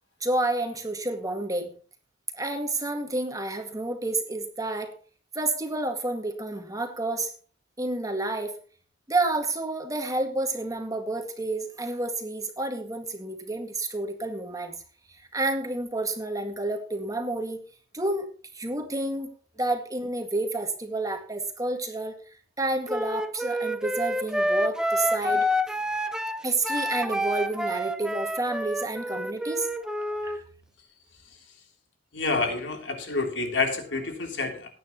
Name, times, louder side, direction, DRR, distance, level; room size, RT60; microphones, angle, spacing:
voice 1, 0.2-1.7 2.3-4.9 5.3-7.3 7.8-8.6 9.1-14.8 15.1-17.6 17.9-18.3 18.5-19.3 19.6-22.1 22.6-25.5 26.4-29.7 30.2-30.4, right 2 dB, 20° right, 5 dB, 1.9 m, -29 dB
Wind instrument woodwind instrument, 22.9-30.4, equal, 5° right, 0.9 m, -28 dB
voice 2, 32.1-34.7, left 3 dB, 70° left, 3 dB, 3.2 m, -28 dB
18.5 x 9.6 x 3.0 m, 0.39 s
head